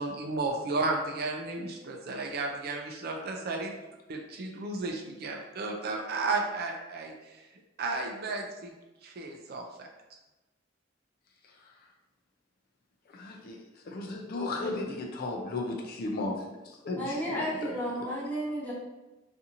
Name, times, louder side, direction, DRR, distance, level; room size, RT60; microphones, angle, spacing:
voice 1, 0.0-3.7 4.1-7.4 7.8-8.7 9.0-9.9, right 3 dB, 55° right, 2 dB, 0.4 m, -33 dB
voice 2, 13.1-13.6 13.9-17.7, left 2 dB, 50° left, 1 dB, 0.4 m, -35 dB
voice 3, 17.0-18.7, equal, 10° left, -8 dB, 0.9 m, -32 dB
2.7 x 2.5 x 2.5 m, 1.1 s
head